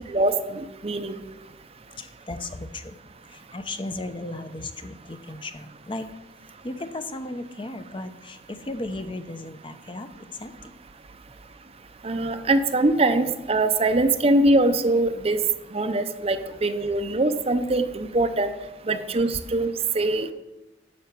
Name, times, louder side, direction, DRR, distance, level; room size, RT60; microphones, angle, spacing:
voice 1, 0.1-1.2 12.0-15.4 15.7-18.5 18.9-20.3, right 2 dB, 35° right, 8 dB, 0.7 m, -23 dB
voice 2, 1.9-3.0 3.3-6.1 6.6-10.7 12.3-12.4, left 2 dB, 30° left, 9 dB, 0.7 m, -35 dB
10.5 x 6.9 x 6.9 m, 1.0 s
head